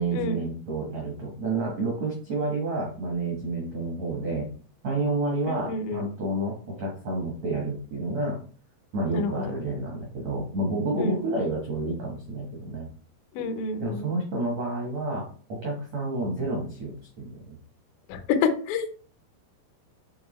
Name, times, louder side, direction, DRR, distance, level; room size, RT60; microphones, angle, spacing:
voice 1, 0.0-4.5 4.8-8.4 8.9-12.9 13.8-15.3 15.6-17.6, right 2 dB, 75° right, -2 dB, 1.5 m, -29 dB
voice 2, 5.5-6.0 9.1-9.3 11.0-11.2 13.3-14.1 18.1-18.9, left 5 dB, 85° left, 7 dB, 2.0 m, -28 dB
9.4 x 3.5 x 3.2 m, 0.42 s
omnidirectional pair, 5.3 m